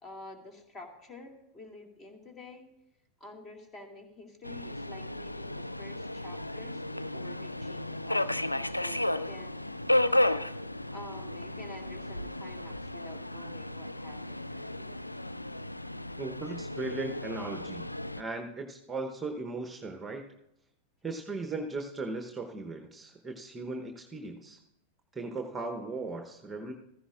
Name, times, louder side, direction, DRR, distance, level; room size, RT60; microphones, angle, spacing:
voice 1, 0.0-2.7 3.2-9.6 10.9-15.0, left 2 dB, 25° left, 3 dB, 2.1 m, -49 dB
Subway metro underground, 4.4-18.2, left 1 dB, 85° left, 0.3 m, -33 dB
voice 2, 16.2-17.9 18.2-20.3 21.0-24.6 25.1-26.7, right 3 dB, 15° right, 4 dB, 0.9 m, -37 dB
15.0 x 14.5 x 2.5 m, 0.85 s
figure-of-eight pair, 90°, 0 cm